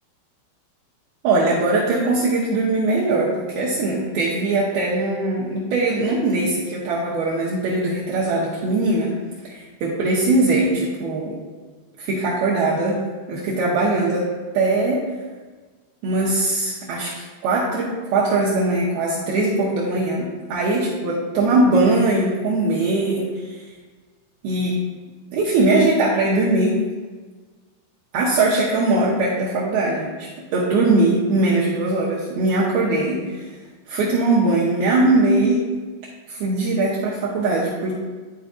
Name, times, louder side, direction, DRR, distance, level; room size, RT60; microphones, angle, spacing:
voice 1, 1.2-9.2 9.4-11.4 12.0-13.0 13.3-15.0 16.0-23.6 24.4-24.8 25.3-26.9 28.1-33.5 33.9-35.7 36.3-38.0, right 2 dB, 80° right, -5 dB, 2.2 m, -21 dB
11.5 x 4.5 x 2.5 m, 1.4 s
omnidirectional pair, 5.3 m